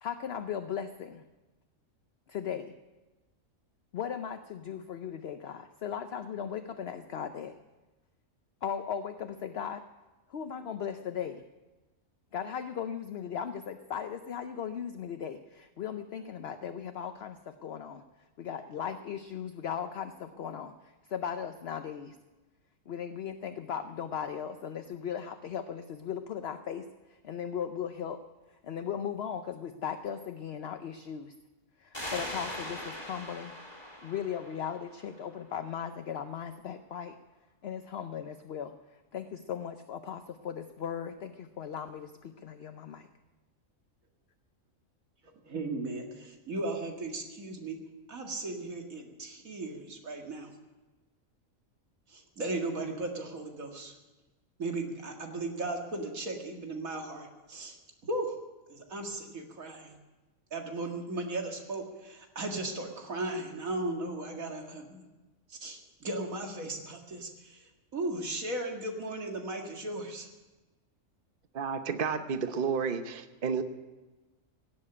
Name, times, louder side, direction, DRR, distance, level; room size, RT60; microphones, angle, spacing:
voice 1, 0.0-1.2 2.3-2.8 3.9-7.5 8.6-9.8 10.3-11.4 12.3-18.0 18.4-22.2 22.9-28.2 28.6-31.3 31.8-33.5 34.0-37.2 37.6-43.1, left 8 dB, 55° left, 8 dB, 0.8 m, -37 dB
sound 1, 31.9-35.3, left 1 dB, 20° left, 3.2 m, -41 dB
voice 2, 45.4-47.8 48.1-50.5 52.1-53.9 54.6-57.8 58.0-58.3 58.7-59.9 60.5-65.0 65.5-70.3, right 2 dB, 80° right, 2 dB, 2.5 m, -36 dB
voice 3, 71.5-73.6, right 6 dB, 45° right, 9 dB, 1.0 m, -31 dB
17.5 x 7.6 x 9.8 m, 1.2 s
omnidirectional pair, 1.4 m